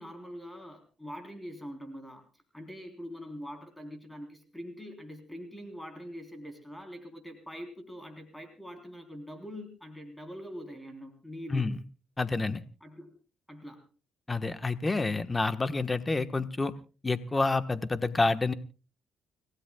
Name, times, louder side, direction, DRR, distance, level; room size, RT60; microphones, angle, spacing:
voice 1, 0.0-2.2 2.5-11.7 12.8-13.2 13.5-13.9, equal, 5° left, 6 dB, 3.6 m, -43 dB
voice 2, 11.5-11.8 12.2-12.6 14.3-16.7 17.0-18.5, left 3 dB, 20° left, 10 dB, 1.2 m, -28 dB
30.0 x 16.5 x 2.3 m, 0.33 s
cardioid pair, 90°, 0 cm